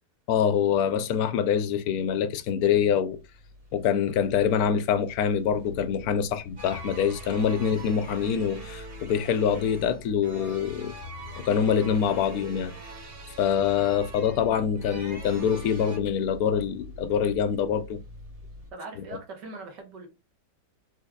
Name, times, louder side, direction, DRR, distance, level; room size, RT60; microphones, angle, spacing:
voice 1, 0.3-3.2 3.7-11.0 11.4-12.7 13.4-18.0, left 8 dB, 70° left, 0.9 m, -25 dB
sound 1, 2.3-18.7, equal, 30° right, 0.7 m, -47 dB
sound 2, 6.6-16.0, right 2 dB, 65° right, 2.5 m, -43 dB
voice 2, 18.7-20.1, right 3 dB, 80° right, 1.9 m, -41 dB
5.4 x 3.7 x 2.3 m
omnidirectional pair, 1.8 m